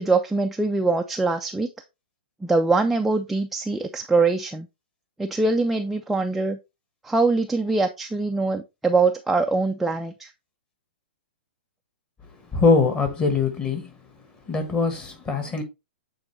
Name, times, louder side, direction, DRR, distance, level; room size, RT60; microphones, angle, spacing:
voice 1, 0.0-1.7 2.4-4.7 5.2-6.6 7.0-10.3, right 3 dB, 5° right, 0.3 m, -23 dB
voice 2, 12.5-14.0 14.5-15.6, left 4 dB, 15° left, 1.2 m, -22 dB
8.0 x 3.8 x 3.1 m
hypercardioid pair, 150°, 6 cm